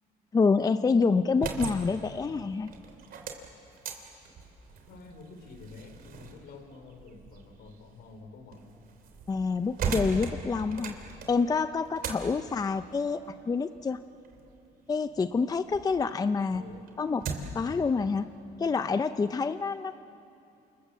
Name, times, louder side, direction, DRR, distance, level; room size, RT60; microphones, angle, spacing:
voice 1, 0.3-2.7 9.3-10.9 11.3-14.0 14.9-16.6 17.0-17.3 17.5-18.3 18.6-20.0, left 4 dB, 20° left, 11 dB, 0.6 m, -27 dB
sound 1, 1.2-15.9 16.3-17.7, right 5 dB, 60° right, 3.5 m, -40 dB
voice 2, 4.9-8.8 16.5-16.9, left 3 dB, 75° left, 7 dB, 3.6 m, -49 dB
28.0 x 26.5 x 7.5 m, 2.7 s
cardioid pair, 110°, 17 cm